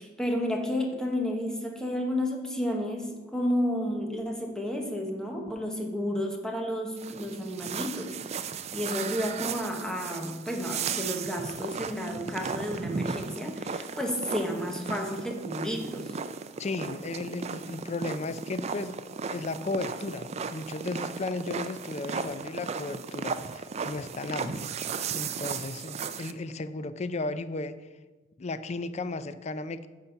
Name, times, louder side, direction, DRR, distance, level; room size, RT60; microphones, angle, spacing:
voice 1, 0.0-8.4 8.7-16.2, equal, 5° left, 2 dB, 1.0 m, -31 dB
sound 1, 7.0-26.3, right 5 dB, 35° right, 0.4 m, -36 dB
voice 2, 16.6-19.0 19.3-24.8 25.1-27.8 28.4-29.9, left 3 dB, 35° left, 13 dB, 0.4 m, -35 dB
9.8 x 4.0 x 6.8 m, 1.3 s
head